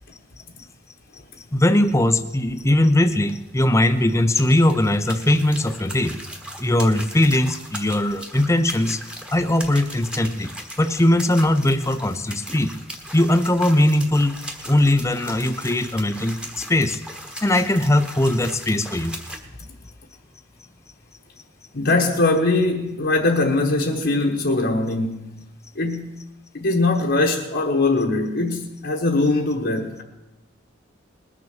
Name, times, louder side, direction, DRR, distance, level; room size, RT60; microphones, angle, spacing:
voice 1, 1.5-6.1 6.6-9.0 9.3-10.5 10.8-12.7 13.1-14.4 14.7-17.0 17.4-19.2, left 1 dB, 15° left, 0.6 m, -20 dB
sound 1, 3.2-19.4, equal, 5° right, 1.3 m, -38 dB
voice 2, 21.7-25.4 25.7-26.2 26.5-30.0, left 2 dB, 60° left, 1.2 m, -21 dB
20.0 x 6.9 x 6.5 m
head